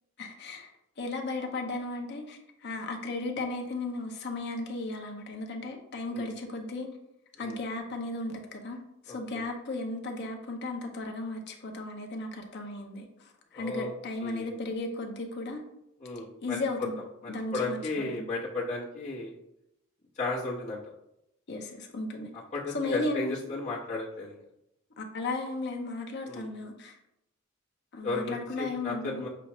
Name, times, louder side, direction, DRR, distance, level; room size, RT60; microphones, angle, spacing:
voice 1, 0.2-0.7 1.0-6.9 7.4-8.8 9.1-15.6 16.4-17.0 17.3-18.3 21.5-22.3 22.7-23.4 25.0-27.0 27.9-29.3, left 2 dB, 55° left, 4 dB, 0.6 m, -35 dB
voice 2, 9.1-9.4 13.5-13.9 14.2-14.5 16.0-16.6 17.2-19.3 20.2-20.8 22.5-24.4 26.2-26.5 28.0-29.3, left 2 dB, 35° left, -8 dB, 1.1 m, -34 dB
6.0 x 2.4 x 3.0 m, 0.84 s
head